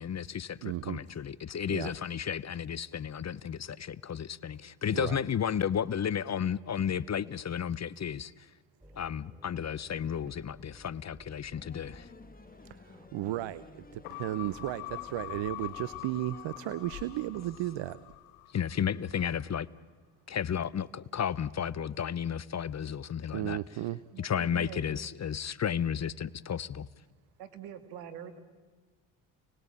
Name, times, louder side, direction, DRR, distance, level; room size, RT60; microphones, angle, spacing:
voice 1, 0.0-8.5 9.0-12.1 18.5-19.7 20.3-23.6 24.2-26.9, left 8 dB, 35° left, 19 dB, 0.8 m, -33 dB
voice 2, 0.6-1.0 1.7-1.9 4.9-5.2 13.1-18.0 23.3-24.0, right 15 dB, 60° right, 17 dB, 0.8 m, -34 dB
sound 1, 8.8-16.9, equal, 10° right, 3.6 m, -58 dB
sound 2, 11.6-18.2, left 4 dB, 15° left, 1.5 m, -55 dB
sound 3, 14.0-18.7 19.1-19.2, left 21 dB, 80° left, 0.7 m, -43 dB
voice 3, 24.1-24.8 27.4-28.4, right 9 dB, 85° right, 10 dB, 2.1 m, -44 dB
29.0 x 19.5 x 8.6 m, 1.4 s
hypercardioid pair, 60°, 49 cm